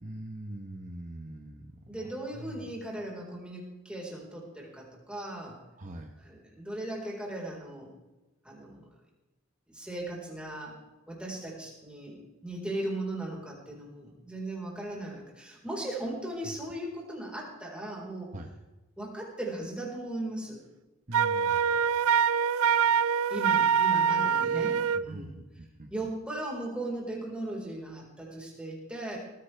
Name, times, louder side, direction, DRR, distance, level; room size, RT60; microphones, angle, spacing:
voice 1, 0.0-1.7 2.0-2.7 5.8-6.1 16.4-16.5 18.3-18.5 21.1-21.8 24.9-25.9, right 1 dB, 35° right, 2 dB, 1.1 m, -43 dB
voice 2, 1.9-5.6 6.2-7.9 8.4-8.9 9.7-10.8 11.1-18.3 19.0-20.6 23.3-25.4 25.9-29.2, right 1 dB, 5° right, -2 dB, 4.3 m, -37 dB
Wind instrument woodwind instrument, 21.1-25.1, right 7 dB, 80° right, 0.4 m, -25 dB
20.0 x 15.0 x 3.4 m, 1.1 s
head